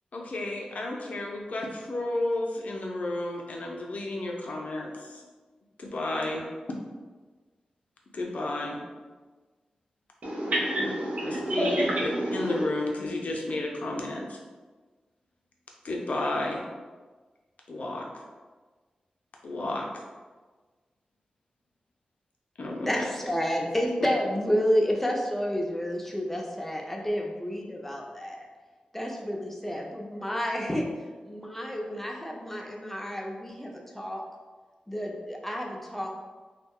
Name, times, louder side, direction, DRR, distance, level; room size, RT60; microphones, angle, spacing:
voice 1, 0.1-5.2 5.8-6.4 8.1-8.8 10.8-10.9 11.2-11.7 12.3-14.4 15.8-16.6 17.7-18.1 19.4-20.0 22.6-23.1, left 2 dB, 65° left, 0 dB, 0.5 m, -32 dB
voice 2, 10.2-12.7, right 1 dB, 70° right, -3 dB, 0.6 m, -28 dB
voice 3, 22.9-28.5 28.9-30.8 31.2-34.2 34.9-36.1, equal, 10° left, 0 dB, 0.5 m, -30 dB
2.3 x 2.1 x 3.5 m, 1.4 s
cardioid pair, 50°, 3 cm